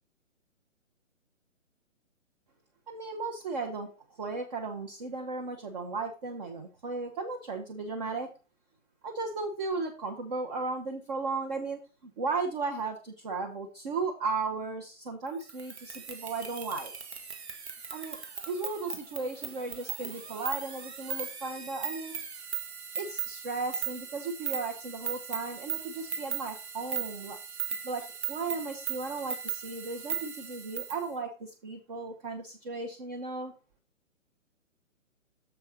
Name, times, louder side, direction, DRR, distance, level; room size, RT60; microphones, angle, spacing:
voice 1, 2.9-3.9 4.2-8.3 9.0-16.9 17.9-18.2 18.5-22.1 23.0-27.4 27.8-33.5, right 3 dB, 30° right, 3 dB, 0.9 m, -35 dB
sound 1, 15.4-31.0, right 7 dB, 55° right, 1.1 m, -38 dB
6.9 x 4.4 x 5.4 m, 0.34 s
figure-of-eight pair, 130°, 40 cm